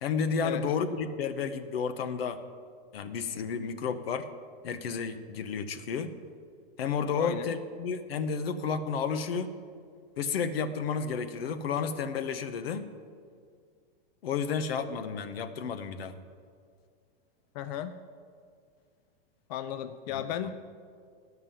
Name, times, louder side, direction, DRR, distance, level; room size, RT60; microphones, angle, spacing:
voice 1, 0.0-2.4 2.9-4.3 4.6-6.1 6.8-9.5 10.2-12.8 14.2-16.2 20.1-20.5, left 6 dB, 85° left, 10 dB, 0.9 m, -31 dB
voice 2, 7.2-7.5 17.5-17.9 19.5-20.5, left 10 dB, 45° left, 11 dB, 0.5 m, -34 dB
11.5 x 6.0 x 7.4 m, 2.1 s
supercardioid pair, 150°, 29 cm